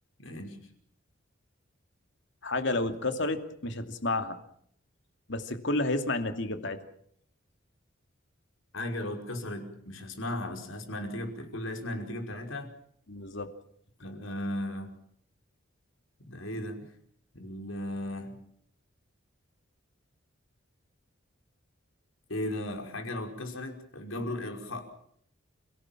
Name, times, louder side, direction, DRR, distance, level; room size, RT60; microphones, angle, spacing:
voice 1, 0.2-0.6 8.7-12.7 14.0-14.9 16.3-16.8 17.3-18.4 22.3-24.8, left 1 dB, 80° left, 4 dB, 5.7 m, -36 dB
voice 2, 2.4-4.4 5.3-6.8 13.1-13.5, left 2 dB, 60° left, 7 dB, 2.7 m, -30 dB
29.5 x 18.0 x 7.5 m, 0.67 s
head